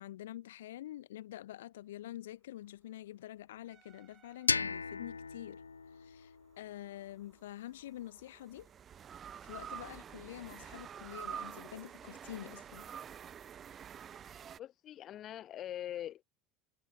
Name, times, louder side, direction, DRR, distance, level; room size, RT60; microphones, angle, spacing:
voice 1, 0.0-5.6 5.9-8.7 9.4-12.9, left 13 dB, 70° left, 2.0 m, -47 dB
sound 1, 3.7-5.2 7.1-14.6, right 8 dB, 35° right, 1.8 m, -48 dB
sound 2, 4.5-7.3, left 5 dB, 85° left, 0.4 m, -37 dB
voice 2, 14.6-16.2, left 11 dB, 40° left, 3.4 m, -43 dB
figure-of-eight pair, 75°, 0 cm